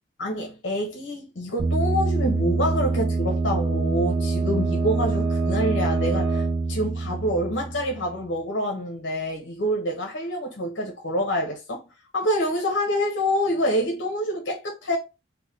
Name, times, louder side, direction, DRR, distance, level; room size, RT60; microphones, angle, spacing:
voice 1, 0.2-11.8 12.1-15.0, equal, 80° left, 0.8 m, -26 dB
sound 1, 1.6-8.2, right 3 dB, 65° right, 0.5 m, -25 dB
3.6 x 2.1 x 3.1 m
head